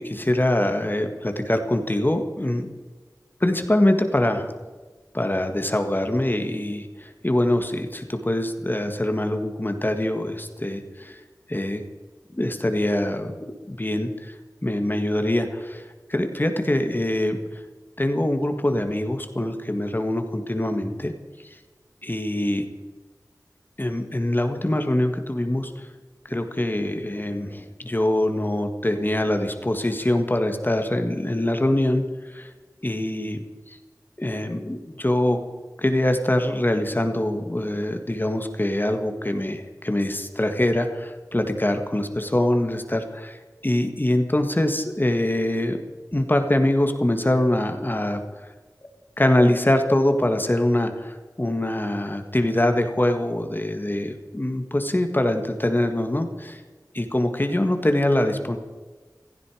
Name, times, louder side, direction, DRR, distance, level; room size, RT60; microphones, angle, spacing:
voice 1, 0.0-2.6 3.4-4.5 5.1-11.2 11.5-11.8 12.3-14.4 14.6-17.4 18.0-21.1 22.0-22.7 23.8-25.9 26.2-32.0 32.3-32.5 32.8-33.4 33.7-33.8 34.2-35.4 35.8-45.8 46.1-48.5 49.2-56.6 56.9-58.6, left 1 dB, 30° left, 6 dB, 1.7 m, -24 dB
16.5 x 15.0 x 5.0 m, 1.3 s
wide cardioid pair, 55°, 7 cm